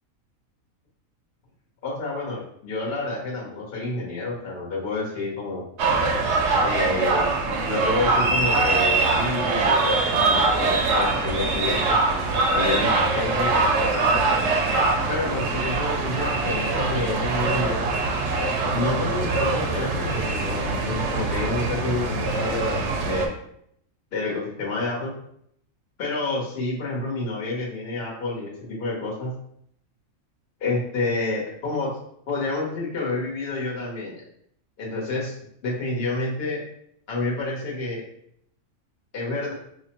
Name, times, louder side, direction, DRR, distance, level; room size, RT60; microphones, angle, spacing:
voice 1, 1.8-5.7 6.6-7.4 7.7-12.0 12.5-14.2 15.1-17.9 18.7-23.3 24.1-25.1 26.0-29.3 30.6-32.0 32.3-34.2 34.8-35.3 35.6-36.6 37.1-38.0 39.1-39.5, left 2 dB, 50° left, -3 dB, 1.1 m, -29 dB
sound 1, 5.8-23.3, right 3 dB, 65° right, 0.8 m, -23 dB
sound 2, 16.1-23.1, right 2 dB, 80° right, 1.1 m, -39 dB
5.0 x 2.1 x 2.9 m, 0.70 s
omnidirectional pair, 1.4 m